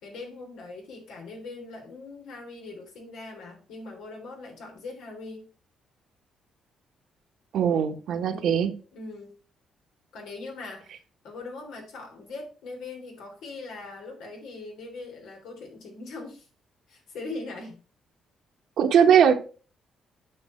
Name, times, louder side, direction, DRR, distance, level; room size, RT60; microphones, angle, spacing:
voice 1, 0.0-5.5 8.3-8.6 8.9-9.3 10.1-11.0 11.2-16.5 16.9-17.8, left 3 dB, 85° left, 2 dB, 3.2 m, -41 dB
voice 2, 7.5-8.7 18.8-19.3, right 8 dB, 70° right, 6 dB, 1.3 m, -20 dB
8.9 x 5.4 x 4.4 m, 0.37 s
cardioid pair, 90°, 0 cm